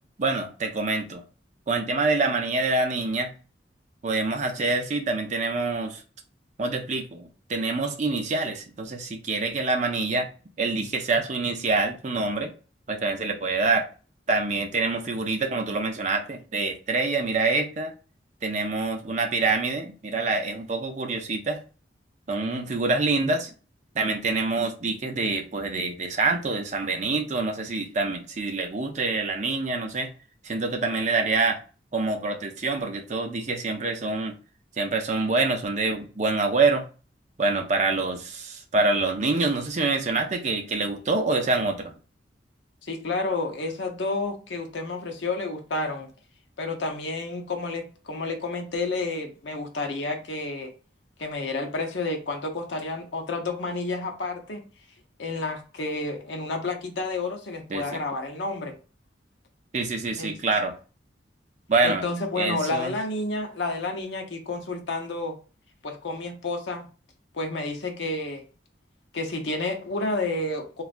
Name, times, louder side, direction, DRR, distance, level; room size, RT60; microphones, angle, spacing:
voice 1, 0.2-1.2 1.7-3.3 4.0-6.0 6.6-10.3 10.6-12.5 12.9-13.9 14.3-17.9 18.4-21.6 22.3-23.5 23.9-30.1 30.4-31.6 31.9-34.3 34.8-36.9 37.4-41.9 57.7-58.0 59.7-60.7 61.7-62.1 62.4-62.9, right 3 dB, 40° right, 0.5 m, -26 dB
voice 2, 42.8-46.1 46.6-50.7 51.2-54.6 55.2-58.7 60.2-60.3 61.8-65.4 65.8-66.8 67.3-68.4 69.1-70.8, left 2 dB, 90° left, 0.7 m, -30 dB
3.1 x 2.4 x 2.5 m
head